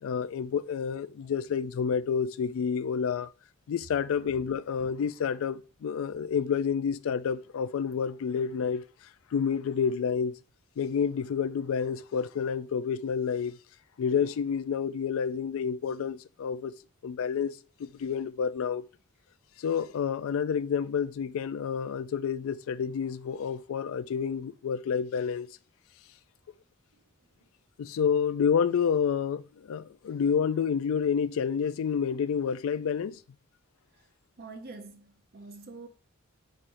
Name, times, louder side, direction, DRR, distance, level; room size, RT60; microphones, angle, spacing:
voice 1, 0.0-3.3 3.7-8.8 9.3-10.4 10.8-13.6 14.0-16.7 17.0-18.8 19.6-25.5 27.8-33.2, left 7 dB, 70° left, 0.3 m, -29 dB
voice 2, 34.4-35.9, right 3 dB, 45° right, 0.6 m, -45 dB
4.8 x 4.3 x 2.6 m
head